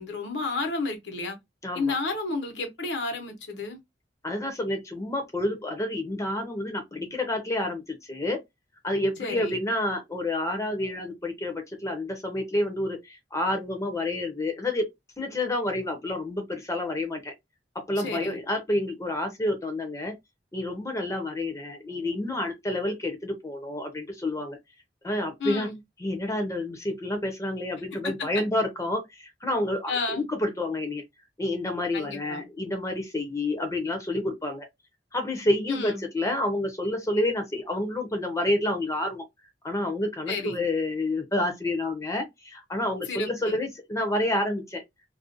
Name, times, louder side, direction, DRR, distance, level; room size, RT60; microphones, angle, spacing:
voice 1, 0.0-1.4 1.7-3.8 9.2-9.6 18.0-18.4 25.4-25.8 29.9-30.2 31.9-32.4 35.7-36.1 40.3-40.6 43.1-43.6, left 3 dB, 90° left, 0.8 m, -31 dB
voice 2, 1.6-2.0 4.2-8.4 8.8-14.9 15.2-17.3 17.7-20.1 20.5-24.6 25.0-25.7 26.0-31.0 31.4-34.7 35.1-39.2 39.6-44.8, left 1 dB, 20° left, 0.5 m, -29 dB
2.4 x 2.1 x 2.6 m
head